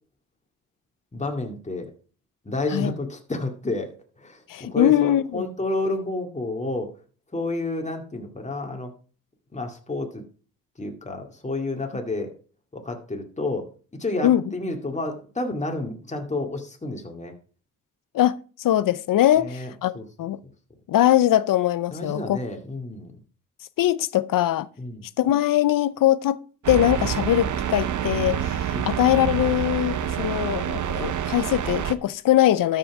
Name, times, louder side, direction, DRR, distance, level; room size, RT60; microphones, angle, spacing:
voice 1, 1.1-1.9 2.5-3.9 4.2-6.9 7.3-8.9 9.5-10.2 10.8-12.3 12.7-13.7 14.0-17.3 19.4-20.1 20.4-20.5 21.9-23.1 24.8-25.0 28.7-29.0, left 2 dB, 20° left, 2.2 m, -30 dB
voice 2, 4.5-5.5 14.2-14.4 18.1-20.4 20.9-22.4 23.8-24.7 25.2-26.4 26.7-32.8, left 12 dB, 65° left, 0.6 m, -21 dB
sound 1, 26.6-31.9, right 9 dB, 55° right, 0.9 m, -27 dB
12.5 x 5.8 x 4.8 m
supercardioid pair, 60°, 35 cm